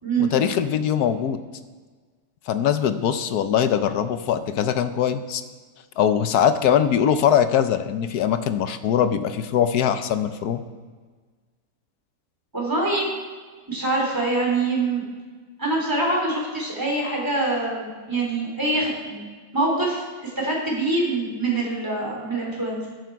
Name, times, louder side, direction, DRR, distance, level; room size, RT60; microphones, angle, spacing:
voice 1, 0.2-1.4 2.5-5.4 6.0-10.6, left 9 dB, 70° left, 10 dB, 1.2 m, -22 dB
voice 2, 12.5-13.1 13.7-15.1 15.6-19.2 19.5-22.9, right 2 dB, 10° right, -3 dB, 3.3 m, -24 dB
14.0 x 10.5 x 4.6 m, 1.5 s
omnidirectional pair, 1.9 m